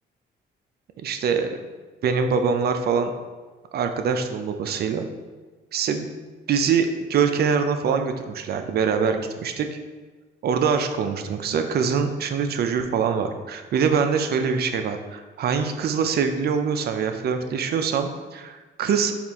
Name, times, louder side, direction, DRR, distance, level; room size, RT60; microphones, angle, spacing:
voice 1, 1.0-1.5 2.0-3.1 3.7-5.1 5.7-6.1 6.5-9.8 10.4-19.1, right 6 dB, 55° right, 7 dB, 0.4 m, -24 dB
4.2 x 2.4 x 3.4 m, 1.3 s
cardioid pair, 90°, 20 cm